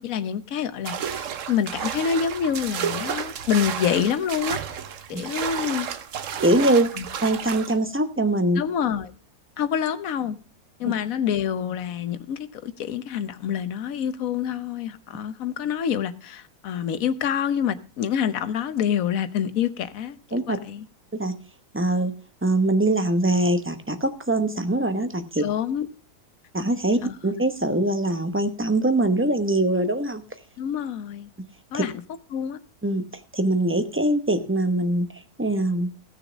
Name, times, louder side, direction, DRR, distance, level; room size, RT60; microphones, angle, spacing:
voice 1, 0.0-4.6 5.1-5.9 6.9-7.0 8.5-9.1 9.6-10.4 10.8-20.8 25.4-25.9 27.0-27.1 30.6-31.3 31.7-31.9 32.3-32.6, left 8 dB, 65° left, 1.2 m, -27 dB
sound 1, 0.9-7.8, right 8 dB, 60° right, 1.1 m, -31 dB
voice 2, 6.4-6.9 7.2-8.6 20.3-20.6 21.1-21.3 21.7-22.1 22.4-25.4 26.5-30.2 31.7-31.8 32.8-33.0 33.3-35.1 35.4-35.9, right 1 dB, 10° right, 0.6 m, -22 dB
16.0 x 6.7 x 4.9 m
omnidirectional pair, 1.6 m